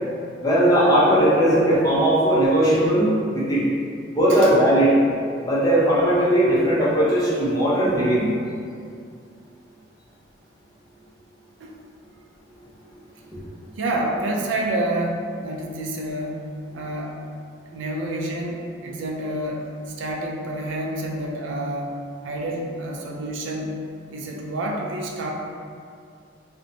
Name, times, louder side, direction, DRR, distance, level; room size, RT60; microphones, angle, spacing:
voice 1, 0.4-3.6 4.1-4.9 5.4-8.3, right 1 dB, 20° left, -8 dB, 0.6 m, -18 dB
voice 2, 13.8-16.4 16.7-17.2 17.7-19.7 20.0-21.9 22.2-23.8 24.1-25.3, right 1 dB, 65° right, -1 dB, 0.4 m, -28 dB
2.5 x 2.1 x 2.7 m, 2.3 s
head